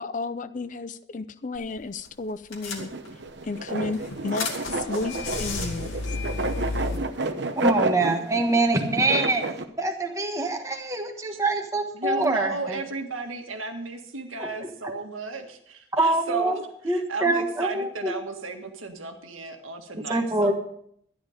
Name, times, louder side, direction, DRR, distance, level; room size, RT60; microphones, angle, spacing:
voice 1, 0.0-2.9 3.4-6.2, left 3 dB, 40° left, 14 dB, 0.5 m, -32 dB
sound 1, 1.6-1.8 2.1-2.2 2.5-3.3 3.8-7.0, left 3 dB, 85° left, 2.3 m, -32 dB
sound 2, 2.7-9.6, right 2 dB, 60° right, 0.9 m, -30 dB
voice 2, 7.6-9.4 9.8-12.8 14.4-14.7 15.9-16.6 16.8-18.1 20.1-20.5, right 2 dB, 15° right, 4 dB, 1.2 m, -25 dB
voice 3, 11.9-20.5, right 3 dB, 90° right, 4 dB, 1.7 m, -34 dB
12.5 x 10.5 x 5.1 m, 0.68 s
head